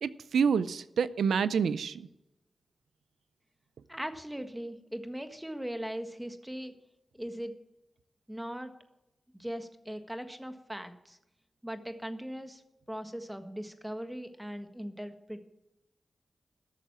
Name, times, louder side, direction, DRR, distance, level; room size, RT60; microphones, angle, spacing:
voice 1, 0.0-2.1, right 6 dB, 90° right, 0.4 m, -28 dB
voice 2, 3.9-6.7 7.1-7.5 8.3-8.7 9.3-11.2 11.6-12.6 12.9-15.4, equal, 5° right, 1.6 m, -39 dB
13.5 x 6.6 x 7.5 m
cardioid pair, 45°, 0 cm